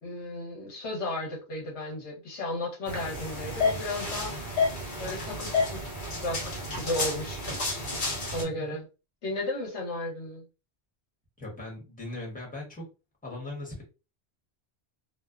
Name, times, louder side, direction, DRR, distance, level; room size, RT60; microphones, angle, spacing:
voice 1, 0.0-4.6 5.0-5.9 6.2-7.4 8.3-8.8 9.2-10.4, left 1 dB, 75° left, 1.2 m, -34 dB
sound 1, 2.9-8.4, left 3 dB, 50° left, 0.9 m, -31 dB
voice 2, 11.4-12.8 13.2-13.8, left 1 dB, 10° left, 1.0 m, -39 dB
2.7 x 2.1 x 2.3 m
omnidirectional pair, 1.1 m